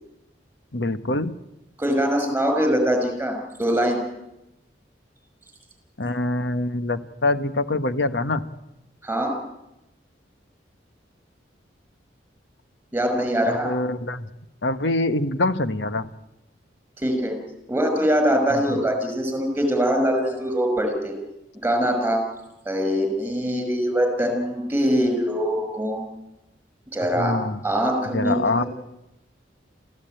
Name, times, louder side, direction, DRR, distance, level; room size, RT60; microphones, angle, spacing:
voice 1, 0.7-1.4 6.0-8.5 13.4-14.3 14.6-16.1 18.5-18.8 27.1-27.6 28.1-28.6, left 2 dB, 70° left, 10 dB, 1.3 m, -24 dB
voice 2, 1.8-4.0 9.0-9.4 12.9-13.7 17.0-17.4 17.7-21.1 21.5-22.2 22.7-26.1 26.9-27.4 27.6-28.7, equal, 10° right, 6 dB, 5.7 m, -23 dB
27.0 x 15.5 x 9.1 m, 0.92 s
head